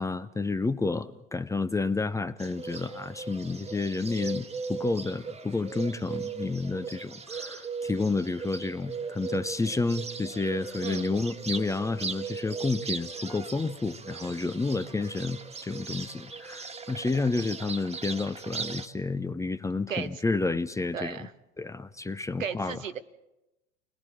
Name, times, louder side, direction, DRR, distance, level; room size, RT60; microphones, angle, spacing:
voice 1, 0.0-21.3 21.6-22.8, left 3 dB, 10° left, 12 dB, 0.7 m, -30 dB
Bird, 2.4-18.9, right 5 dB, 15° right, 1.6 m, -38 dB
voice 2, 20.9-21.3 22.4-23.0, right 7 dB, 85° right, 9 dB, 1.3 m, -35 dB
29.5 x 21.0 x 4.5 m, 0.96 s
hypercardioid pair, 85°, 38 cm